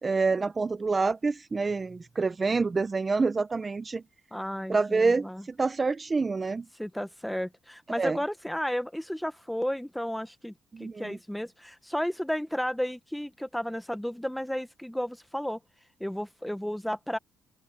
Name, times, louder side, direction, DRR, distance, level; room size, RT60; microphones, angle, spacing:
voice 1, 0.0-4.0 4.7-6.7 8.0-8.2 10.7-11.2, right 4 dB, 30° right, 0.8 m, -27 dB
voice 2, 4.3-5.4 6.8-10.5 10.8-15.6 16.0-17.2, equal, 5° left, 1.4 m, -33 dB
open air
cardioid pair, 90°, 0 cm